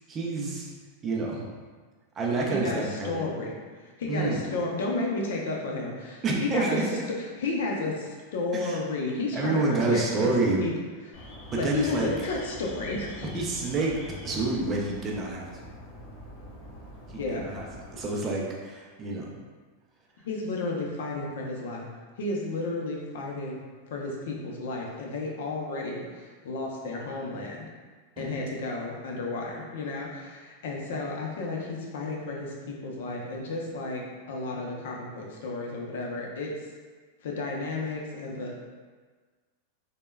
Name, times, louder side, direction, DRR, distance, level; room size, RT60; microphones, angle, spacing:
voice 1, 0.1-0.7 1.0-1.5 2.2-3.2 4.1-4.6 6.2-6.9 8.5-8.8 9.3-10.6 11.5-12.1 13.2-13.9 14.2-15.5 17.1-17.7 17.9-19.4 28.2-28.4, right 3 dB, 20° right, -2 dB, 0.3 m, -28 dB
voice 2, 2.5-3.5 4.0-6.8 7.4-9.6 9.9-10.3 10.6-10.7 11.1-11.3 11.6-13.3 17.1-17.5 20.2-21.9 22.2-23.6 23.9-27.7 28.2-36.6 37.2-38.5, left 3 dB, 75° left, -1 dB, 0.5 m, -32 dB
Alarm, 11.1-18.0, left 1 dB, 40° left, 1.3 m, -44 dB
3.2 x 2.1 x 2.2 m, 1.4 s
supercardioid pair, 165°, 0 cm